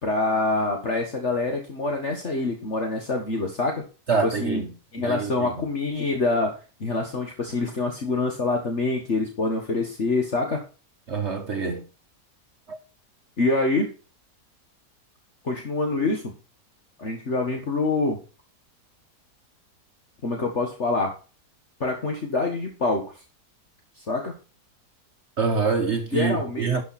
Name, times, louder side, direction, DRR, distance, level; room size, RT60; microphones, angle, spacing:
voice 1, 0.0-3.8 4.2-4.6 4.9-6.5 6.8-10.6 13.4-13.9 15.4-16.2 17.0-18.2 20.2-21.1 21.8-23.2 24.0-24.3 26.1-26.7, left 3 dB, 45° left, 2.0 m, -25 dB
voice 2, 4.1-4.7 5.1-5.7 11.1-11.9 12.7-12.8 25.4-26.8, right 5 dB, 45° right, 1.3 m, -26 dB
12.5 x 6.3 x 4.3 m
omnidirectional pair, 1.7 m